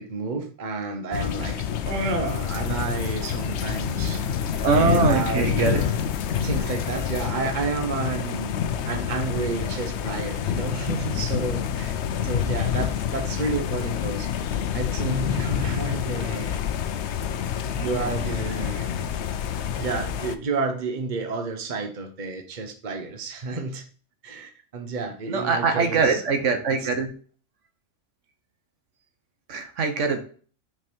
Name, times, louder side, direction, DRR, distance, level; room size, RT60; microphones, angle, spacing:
voice 1, 0.0-1.6 1.8-4.2 4.7-5.9 6.3-8.6 8.9-14.3 14.7-16.6 17.7-19.1 19.8-23.8 24.2-26.2 26.7-26.9, right 3 dB, 40° right, 5 dB, 1.1 m, -30 dB
sound 1, 1.1-20.4, left 9 dB, 65° left, 0.9 m, -28 dB
sound 2, 2.3-7.3, left 4 dB, 90° left, 1.2 m, -36 dB
voice 2, 4.6-5.8 17.7-18.1 18.4-18.5 25.3-27.1 29.5-30.2, right 4 dB, 75° right, 6 dB, 1.3 m, -23 dB
6.0 x 5.0 x 4.4 m, 0.42 s
omnidirectional pair, 1.3 m